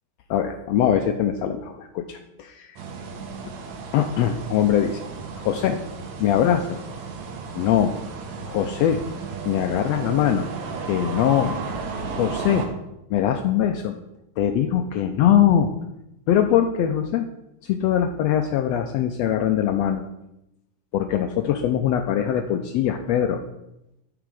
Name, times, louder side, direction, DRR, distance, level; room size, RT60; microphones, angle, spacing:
voice 1, 0.3-2.8 3.9-5.0 5.4-5.8 6.2-6.8 7.6-7.9 8.5-9.0 9.4-10.5 10.9-11.6 12.2-12.7 13.1-13.9 14.4-15.7 16.3-17.3 17.6-20.0 20.9-23.4, left 10 dB, 85° left, 6 dB, 1.5 m, -22 dB
sound 1, 2.8-12.7, right 5 dB, 70° right, 2.3 m, -34 dB
12.5 x 6.0 x 4.8 m, 0.87 s
omnidirectional pair, 3.5 m